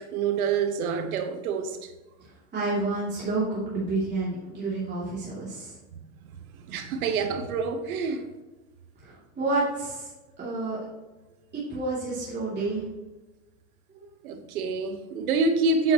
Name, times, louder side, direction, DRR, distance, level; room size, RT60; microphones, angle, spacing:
voice 1, 0.0-1.9 6.7-8.3 14.2-15.9, right 4 dB, 85° right, 1.3 m, -27 dB
voice 2, 2.5-5.7 9.0-10.1 10.4-10.8 11.5-12.8 14.0-14.1, right 3 dB, 25° right, 2.9 m, -29 dB
8.2 x 7.8 x 3.0 m
hypercardioid pair, 105°, 42 cm